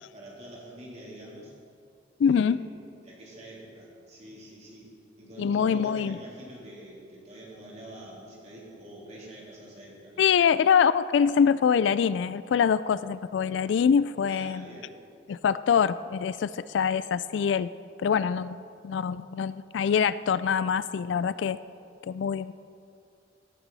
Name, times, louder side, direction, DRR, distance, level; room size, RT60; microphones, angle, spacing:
voice 1, 0.1-1.5 2.2-4.9 5.2-10.4 14.3-14.9, right 1 dB, 35° right, -5 dB, 3.2 m, -45 dB
voice 2, 2.2-2.6 5.4-6.2 10.2-14.7 15.3-17.7 18.0-21.6 22.0-22.5, left 7 dB, 70° left, 16 dB, 0.3 m, -24 dB
17.0 x 8.9 x 4.1 m, 2.4 s
head